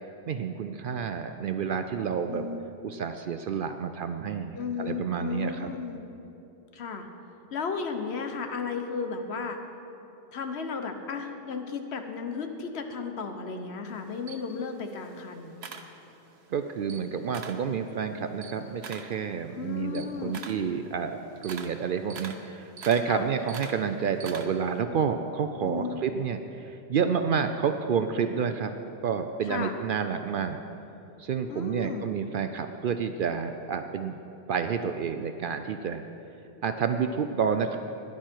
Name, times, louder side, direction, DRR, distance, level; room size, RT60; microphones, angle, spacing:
voice 1, 0.3-2.5 2.8-5.7 16.5-28.7 29.0-30.6 31.2-34.2 34.5-36.0 36.6-37.8, right 6 dB, 60° right, 7 dB, 0.7 m, -29 dB
voice 2, 2.3-2.6 4.5-6.0 6.7-7.1 7.5-9.6 10.3-15.5 19.5-20.4 23.1-23.3 25.6-26.0 29.4-29.8 31.5-32.1, left 5 dB, 90° left, 6 dB, 1.2 m, -34 dB
Camera, 13.9-16.4 16.8-17.7 18.1-24.8, right 6 dB, 85° right, 1.1 m, -44 dB
16.0 x 11.0 x 4.5 m, 2.9 s
omnidirectional pair, 1.1 m